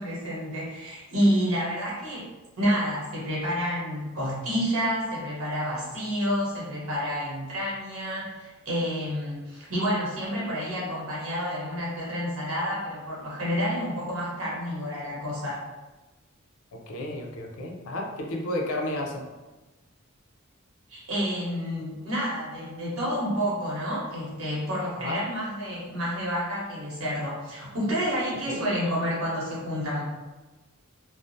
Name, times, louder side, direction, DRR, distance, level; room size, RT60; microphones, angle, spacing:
voice 1, 0.0-2.3 2.6-15.6 20.9-30.1, equal, 85° right, -6 dB, 1.0 m, -29 dB
voice 2, 16.7-19.2 25.0-25.2 28.5-28.6, left 1 dB, 75° left, 0 dB, 0.5 m, -32 dB
2.3 x 2.1 x 2.6 m, 1.2 s
head